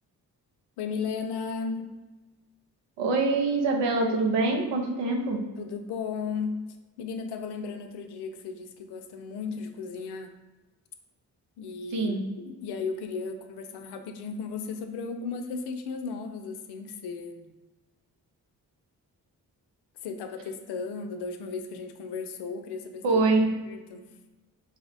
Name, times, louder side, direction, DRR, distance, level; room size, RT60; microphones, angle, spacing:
voice 1, 0.8-1.9 5.6-6.6 7.0-10.3 11.6-12.1 12.4-17.5 20.0-23.2 23.7-24.1, left 5 dB, 70° left, 6 dB, 0.5 m, -35 dB
voice 2, 3.0-5.4 11.9-12.2 23.0-23.5, right 3 dB, 80° right, 2 dB, 0.6 m, -24 dB
4.1 x 2.0 x 2.6 m, 1.1 s
hypercardioid pair, 40°, 42 cm